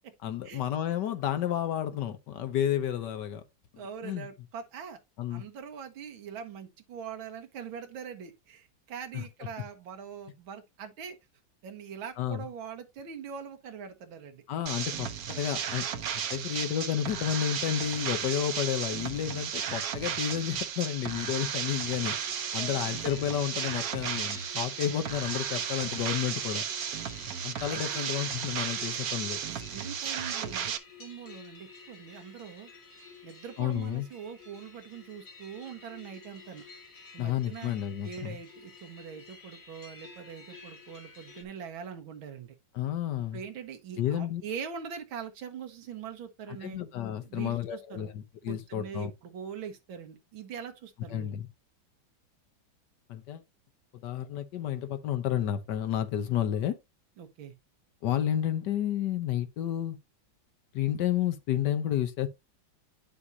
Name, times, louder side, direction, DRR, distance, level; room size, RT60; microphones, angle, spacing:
voice 1, 0.2-3.4 4.0-4.3 5.2-5.4 9.1-9.2 12.2-12.5 14.5-15.9 16.3-22.2 22.5-26.6 27.4-29.4 33.6-34.1 37.2-38.4 42.7-43.4 44.0-44.4 46.6-49.1 51.1-51.5 53.1-53.4 54.0-56.8 58.0-60.0 60.7-62.3, left 10 dB, 65° left, 1.4 m, -31 dB
voice 2, 3.8-5.0 5.3-11.2 11.6-14.4 21.4-21.5 22.1-23.0 27.7-28.1 29.5-30.7 31.0-32.7 33.2-36.6 37.1-37.7 38.0-42.6 43.2-46.8 47.2-48.1 48.5-51.3 57.2-57.5, right 7 dB, 85° right, 2.0 m, -42 dB
sound 1, 14.7-30.8, right 8 dB, 55° right, 1.1 m, -34 dB
sound 2, 22.1-41.4, left 4 dB, 45° left, 2.0 m, -51 dB
9.5 x 6.2 x 2.7 m
omnidirectional pair, 2.1 m